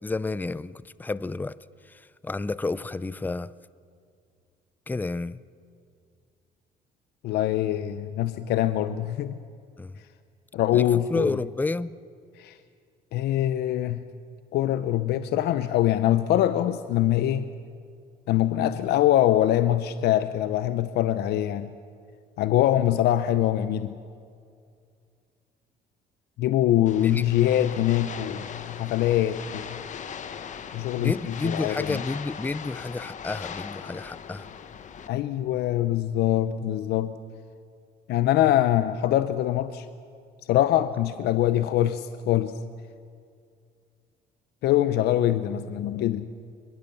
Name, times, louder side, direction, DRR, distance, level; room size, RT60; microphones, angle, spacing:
voice 1, 0.0-3.5 4.9-5.4 9.8-10.0 10.7-11.9 27.0-27.2 31.0-34.5, left 3 dB, 10° left, 18 dB, 0.5 m, -31 dB
voice 2, 7.2-9.3 10.5-11.4 12.4-12.6 13.1-14.0 14.5-17.5 18.3-21.7 22.4-24.0 26.4-29.8 30.7-31.1 31.4-32.0 35.1-37.1 38.1-39.9 40.5-42.6 44.6-46.3, left 12 dB, 75° left, 12 dB, 0.8 m, -23 dB
sound 1, 26.9-35.1, left 7 dB, 45° left, 1.3 m, -39 dB
23.5 x 21.5 x 7.1 m, 2.3 s
cardioid pair, 110°, 17 cm